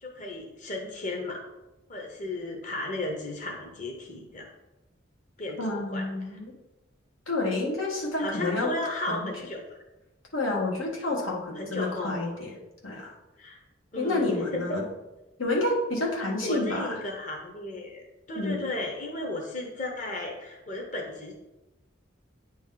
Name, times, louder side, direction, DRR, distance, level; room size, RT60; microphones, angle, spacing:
voice 1, 0.0-1.4 1.9-4.5 5.4-6.4 8.2-9.8 11.6-12.2 13.4-13.6 13.9-14.8 16.2-21.3, left 1 dB, 40° left, 1 dB, 0.8 m, -35 dB
voice 2, 5.6-6.5 7.3-9.3 10.3-12.5 12.8-13.1 14.0-14.8 15.4-17.0 18.4-18.6, left 2 dB, 85° left, -2 dB, 1.2 m, -29 dB
8.9 x 3.0 x 3.7 m, 1.0 s
head